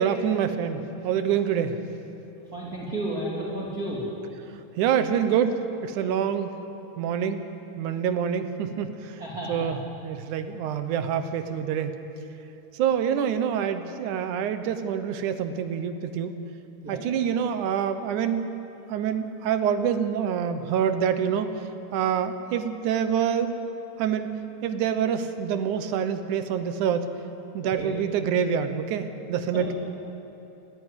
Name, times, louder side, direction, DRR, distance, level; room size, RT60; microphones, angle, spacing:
voice 1, 0.0-1.8 4.8-6.6 7.0-7.4 7.8-9.2 9.5-12.0 12.7-16.3 16.9-18.5 18.9-21.5 21.9-23.5 24.0-24.3 24.6-27.1 27.5-29.7, right 8 dB, 80° right, 9 dB, 2.5 m, -26 dB
voice 2, 2.5-4.0 9.2-9.7 16.8-17.0 27.7-27.9 29.5-29.7, right 1 dB, 30° right, -5 dB, 2.8 m, -32 dB
19.0 x 14.5 x 9.7 m, 2.9 s
omnidirectional pair, 3.5 m